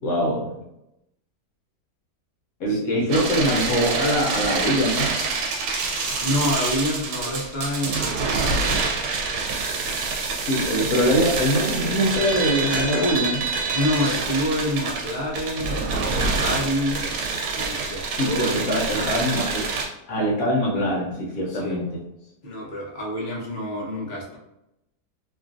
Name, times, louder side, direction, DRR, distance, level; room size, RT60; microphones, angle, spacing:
voice 1, 0.0-0.6 2.6-5.1 10.5-13.4 18.2-19.7 20.1-22.0, equal, 65° left, -3 dB, 1.0 m, -23 dB
voice 2, 2.7-3.1 6.2-8.8 13.7-17.1 17.5-19.2 21.5-21.8 22.4-24.4, left 1 dB, 45° left, -5 dB, 0.6 m, -28 dB
sound 1, 3.1-19.9, right 4 dB, 85° right, 1.3 m, -26 dB
3.0 x 2.4 x 2.4 m, 0.87 s
omnidirectional pair, 1.8 m